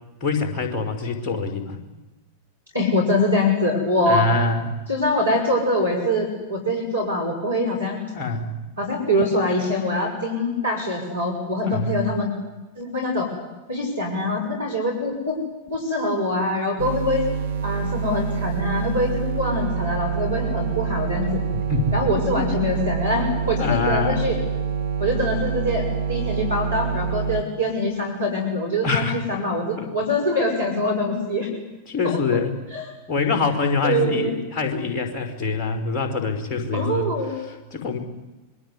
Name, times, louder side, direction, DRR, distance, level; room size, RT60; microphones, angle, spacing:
voice 1, 0.2-1.8 4.1-4.8 8.1-8.6 11.6-12.0 21.5-22.0 22.4-22.5 23.5-24.2 28.8-29.4 29.8-29.9 31.1-31.2 31.9-32.5 33.1-37.1 37.4-38.0, left 4 dB, 35° left, 4 dB, 4.8 m, -25 dB
voice 2, 2.7-4.3 4.9-8.0 8.8-12.3 12.8-13.3 13.7-15.4 15.7-17.3 17.6-21.4 21.9-24.4 25.0-31.5 32.0-32.2 32.7-32.9 33.8-34.3 36.7-37.4, left 1 dB, 85° right, 0 dB, 6.6 m, -24 dB
sound 1, 16.8-27.4, right 6 dB, 65° right, 1.9 m, -26 dB
25.5 x 22.5 x 9.8 m, 1.1 s
figure-of-eight pair, 90°, 0 cm